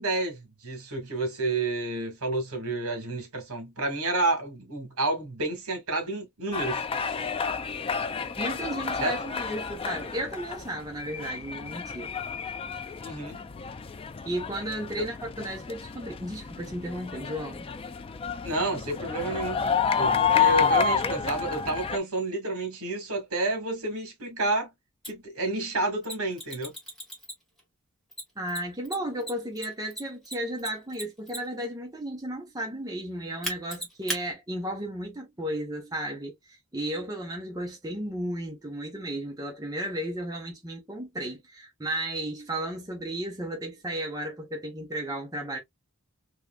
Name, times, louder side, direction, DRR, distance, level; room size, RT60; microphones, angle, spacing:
voice 1, 0.0-6.9 9.0-9.2 13.0-13.4 15.0-15.1 18.4-19.6 20.0-24.7 25.1-26.7, right 2 dB, 80° right, 2.1 m, -30 dB
sound 1, 6.5-22.0, left 6 dB, 25° left, 0.3 m, -30 dB
voice 2, 8.4-12.1 14.2-17.7 28.4-45.6, right 1 dB, 15° right, 1.0 m, -34 dB
Mechanisms, 25.0-25.1 26.0-27.6 28.1-31.7 33.4-34.2, equal, ahead, 1.6 m, -36 dB
3.6 x 3.1 x 2.3 m
head